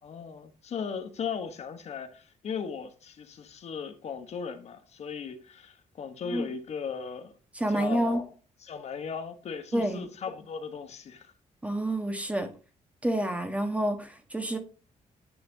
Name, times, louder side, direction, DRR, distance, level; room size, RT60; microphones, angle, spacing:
voice 1, 0.0-7.3 7.7-8.3 8.6-11.3, left 6 dB, 55° left, 1.2 m, -37 dB
voice 2, 7.5-8.2 9.7-10.0 11.6-12.5 13.0-14.6, right 1 dB, 10° right, 1.4 m, -28 dB
9.5 x 5.9 x 2.8 m
cardioid pair, 135°, 14 cm